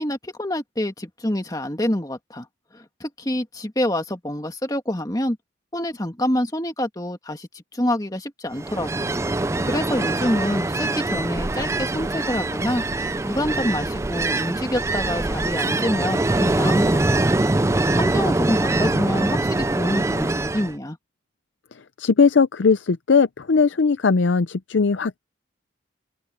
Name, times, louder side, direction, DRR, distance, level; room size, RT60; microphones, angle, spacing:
voice 1, 0.0-2.5 2.7-5.4 5.7-9.1 9.6-12.8 13.2-17.3 18.0-21.0, left 1 dB, 20° left, 1.9 m, -27 dB
Ocean, 8.5-20.7, right 2 dB, 15° right, 0.4 m, -23 dB
voice 2, 22.0-25.2, left 5 dB, 75° left, 0.5 m, -19 dB
open air
head